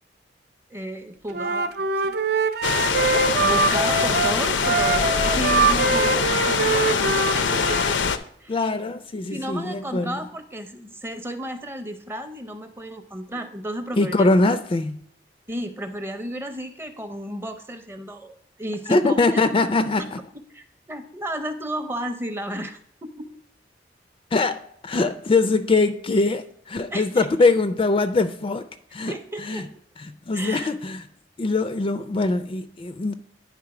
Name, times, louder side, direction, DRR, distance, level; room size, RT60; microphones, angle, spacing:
voice 1, 0.7-2.1 3.4-8.0 8.4-8.7 9.3-14.3 15.5-19.4 20.5-23.3 26.9-27.3 29.1-29.7 30.3-30.7, equal, 15° right, 0.6 m, -33 dB
Wind instrument woodwind instrument, 1.3-7.9, right 4 dB, 60° right, 0.5 m, -23 dB
sound 1, 2.6-8.2, left 6 dB, 85° left, 0.5 m, -23 dB
voice 2, 8.5-10.2 14.0-15.0 18.9-20.2 24.3-29.6 30.0-31.0 31.4-33.1, left 3 dB, 30° left, 0.3 m, -22 dB
9.7 x 3.6 x 4.8 m
head